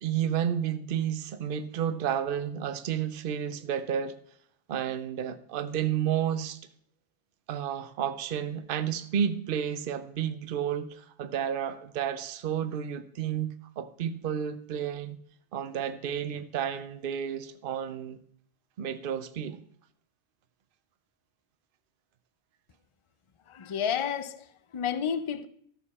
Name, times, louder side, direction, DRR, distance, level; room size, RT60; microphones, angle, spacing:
voice 1, 0.0-4.2 4.7-6.6 7.5-15.2 15.5-18.2 18.8-19.6, right 9 dB, 55° right, 0.8 m, -31 dB
voice 2, 23.5-25.5, left 8 dB, 40° left, 0.5 m, -31 dB
14.0 x 6.7 x 4.2 m
omnidirectional pair, 1.2 m